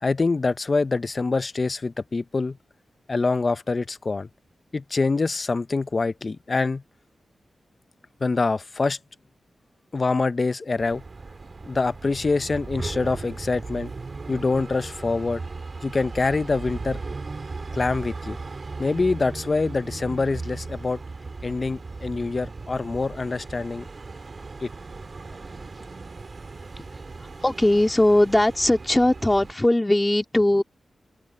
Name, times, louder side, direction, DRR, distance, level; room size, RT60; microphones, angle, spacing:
voice 1, 0.0-2.6 3.1-4.3 4.7-6.8 8.2-9.0 9.9-11.0 11.6-13.9 14.3-15.4 15.8-17.0 17.7-18.4 18.8-21.0 21.4-23.9 24.6-24.7, left 3 dB, 35° left, 0.7 m, -25 dB
sound 1, 10.8-29.5, right 3 dB, 40° right, 2.7 m, -37 dB
voice 2, 27.4-30.6, left 1 dB, 15° left, 2.1 m, -19 dB
open air
wide cardioid pair, 115°, 0 cm